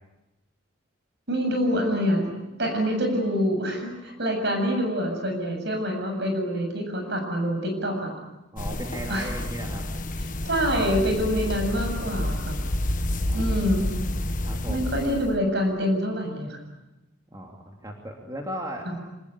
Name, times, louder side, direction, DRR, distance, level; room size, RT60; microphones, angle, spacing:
voice 1, 1.3-2.3 2.6-8.1 9.1-9.3 10.5-12.6 13.3-13.9 14.7-16.6 18.9-19.0, equal, 60° right, 4 dB, 7.6 m, -26 dB
voice 2, 8.5-9.9 13.3-13.6 14.4-14.9 17.3-18.9, equal, 20° right, 0 dB, 2.8 m, -36 dB
sound 1, 8.6-15.4, left 1 dB, 40° left, 1.4 m, -29 dB
26.5 x 20.5 x 9.9 m, 0.99 s
head